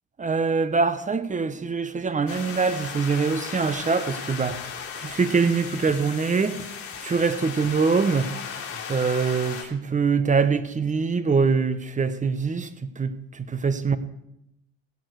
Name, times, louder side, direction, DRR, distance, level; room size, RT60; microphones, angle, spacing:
voice 1, 0.2-6.8 7.0-8.4 8.9-14.0, right 5 dB, 25° right, 1.2 m, -24 dB
sound 1, 2.3-9.6, left 7 dB, 45° left, 3.2 m, -36 dB
16.5 x 8.9 x 4.9 m
supercardioid pair, 85°, 31 cm